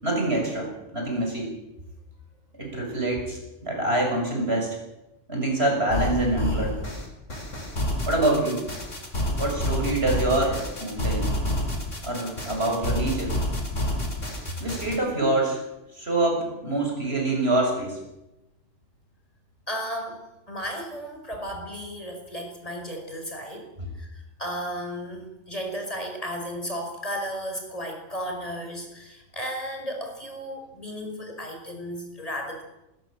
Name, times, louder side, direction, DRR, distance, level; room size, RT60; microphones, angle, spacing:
voice 1, 0.0-1.6 2.6-4.8 5.3-6.9 8.1-8.7 9.4-11.3 12.0-13.4 14.6-15.6 15.9-18.0 23.8-23.9, right 2 dB, 55° right, 1 dB, 6.8 m, -25 dB
sound 1, 5.9-15.0, left 1 dB, 75° left, 5.1 m, -29 dB
voice 2, 19.7-20.2 20.5-23.7 24.0-32.6, equal, 30° left, 3 dB, 5.5 m, -34 dB
20.5 x 20.0 x 7.7 m, 0.93 s
omnidirectional pair, 1.3 m